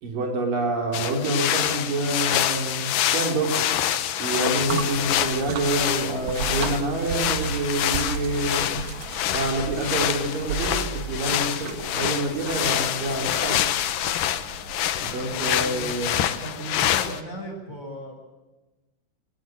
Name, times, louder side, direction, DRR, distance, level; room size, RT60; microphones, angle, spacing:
voice 1, 0.0-3.7 4.2-8.9 9.3-13.6 15.0-16.3, right 2 dB, 85° right, 2 dB, 5.5 m, -27 dB
sound 1, 0.9-17.2, left 11 dB, 80° left, 2.7 m, -26 dB
sound 2, 4.6-16.2, right 6 dB, 65° right, 2.7 m, -35 dB
voice 2, 15.1-15.9 16.4-18.1, right 1 dB, 20° left, -1 dB, 7.5 m, -37 dB
24.5 x 18.5 x 7.7 m, 1.1 s
omnidirectional pair, 3.8 m